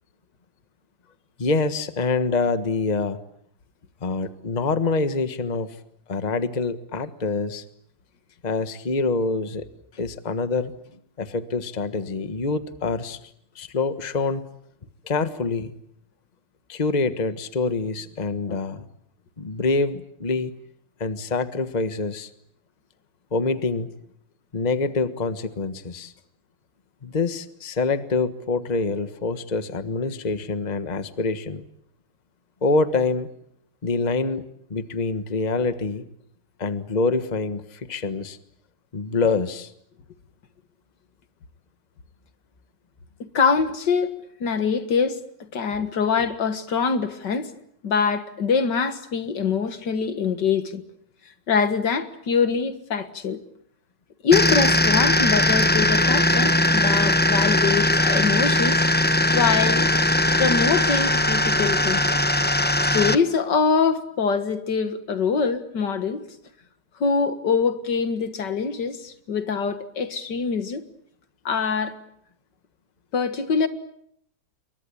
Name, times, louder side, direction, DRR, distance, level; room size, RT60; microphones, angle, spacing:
voice 1, 1.4-3.2 4.0-5.8 6.1-7.6 8.4-9.7 9.9-10.7 11.2-13.2 13.5-14.4 15.0-15.7 16.7-18.9 19.4-20.5 21.0-22.3 23.3-23.9 24.5-26.1 27.0-31.6 32.6-33.3 33.8-36.1 36.6-38.4 38.9-39.7, left 3 dB, 25° left, 1.4 m, -25 dB
voice 2, 43.3-45.2 45.5-47.5 47.8-50.8 51.5-53.4 54.2-58.8 59.3-59.9 60.4-62.2 62.9-66.2 67.0-70.8 71.5-72.0 73.1-73.7, left 5 dB, 75° left, 2.3 m, -24 dB
sound 1, 54.3-63.2, left 1 dB, 10° left, 0.5 m, -20 dB
28.5 x 23.0 x 8.5 m
omnidirectional pair, 1.9 m